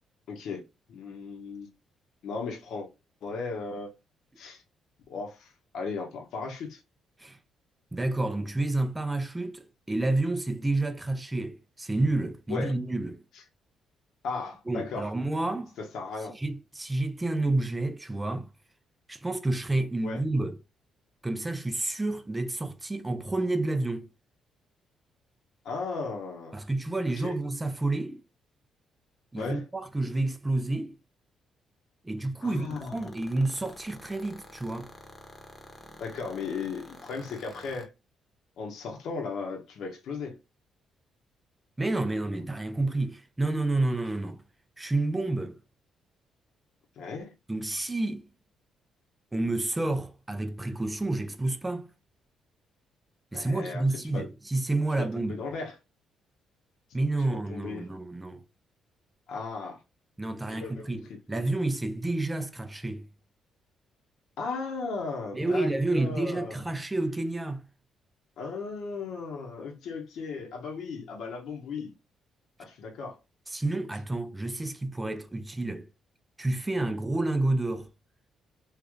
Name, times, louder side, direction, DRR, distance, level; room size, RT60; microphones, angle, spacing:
voice 1, 0.3-0.6 0.9-1.7 2.2-2.9 3.2-3.9 4.4-4.6 5.1-6.8 12.5-12.8 13.3-13.4 14.2-15.1 15.8-16.4 20.0-20.2 25.6-26.6 27.2-27.4 29.4-29.6 32.4-33.1 36.0-37.9 38.6-40.4 47.0-47.3 53.3-54.3 54.9-55.8 57.2-57.9 59.3-59.8 60.5-61.2 64.4-66.6 68.4-71.9 72.6-73.2, left 4 dB, 75° left, 1.1 m, -36 dB
voice 2, 7.9-13.2 14.7-15.7 16.3-18.5 19.1-20.6 21.2-24.1 26.5-28.2 29.3-31.0 32.0-34.9 41.8-44.4 44.8-45.6 47.5-48.2 49.3-51.9 53.3-55.4 56.9-58.4 60.2-63.1 65.3-67.6 73.5-75.9 76.4-77.9, right 2 dB, 15° right, 0.6 m, -29 dB
sound 1, 32.6-37.9, left 2 dB, 30° left, 1.0 m, -48 dB
3.3 x 2.5 x 3.5 m
cardioid pair, 90°, 0 cm